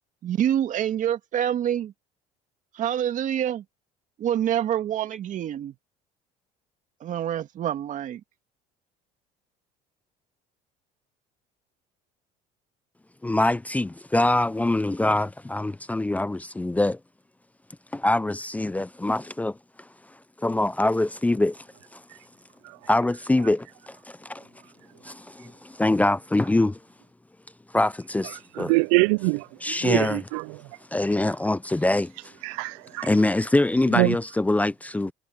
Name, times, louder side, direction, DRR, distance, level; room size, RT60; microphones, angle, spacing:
voice 1, 0.2-1.9 2.7-3.6 4.2-5.7 7.0-8.2, right 10 dB, 50° right, 2.0 m, -26 dB
voice 2, 13.2-17.0 17.9-19.6 20.4-21.6 21.9-22.0 22.9-24.4 25.0-26.8 27.7-28.7 29.6-30.3 30.9-32.3 33.0-35.1, left 2 dB, 10° left, 0.6 m, -24 dB
voice 3, 28.7-29.5 29.8-30.4 32.4-33.1 34.0-34.1, right 27 dB, 85° right, 0.4 m, -23 dB
supercardioid pair, 95°, 16 cm